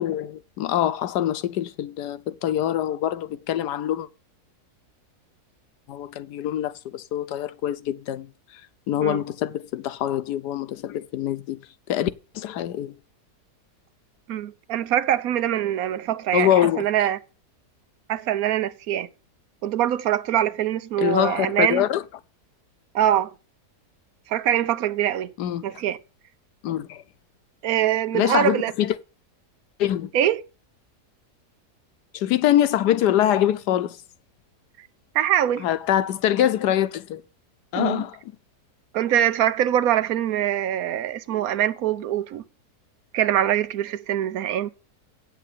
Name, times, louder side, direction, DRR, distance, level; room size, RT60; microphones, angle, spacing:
voice 1, 0.0-4.1 5.9-8.3 8.9-11.6 11.9-12.1 12.3-12.9 16.3-16.9 21.0-22.0 25.4-25.6 26.6-27.0 28.1-28.9 29.8-30.1 32.1-34.0 35.6-37.2 37.7-38.2, left 11 dB, 90° left, 1.3 m, -24 dB
voice 2, 14.3-17.2 18.1-19.1 19.6-21.8 22.9-23.3 24.3-25.3 25.6-26.0 27.6-28.7 30.1-30.4 35.1-35.7 37.8-38.1 38.9-42.4 43.1-44.7, right 11 dB, 70° right, 1.1 m, -23 dB
8.6 x 7.7 x 8.4 m
omnidirectional pair, 1.7 m